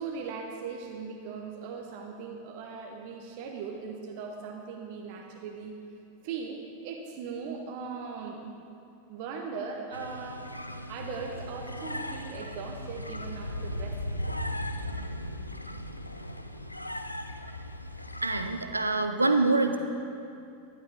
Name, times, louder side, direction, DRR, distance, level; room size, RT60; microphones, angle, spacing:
voice 1, 0.0-5.8 6.2-8.5 9.1-10.4 10.9-14.3, right 5 dB, 45° right, 2 dB, 0.9 m, -39 dB
sound 1, 9.9-18.7, left 1 dB, 85° left, 0.4 m, -37 dB
voice 2, 18.2-19.8, right 3 dB, 80° right, 7 dB, 0.6 m, -25 dB
12.5 x 11.0 x 3.5 m, 2.6 s
figure-of-eight pair, 90°, 0 cm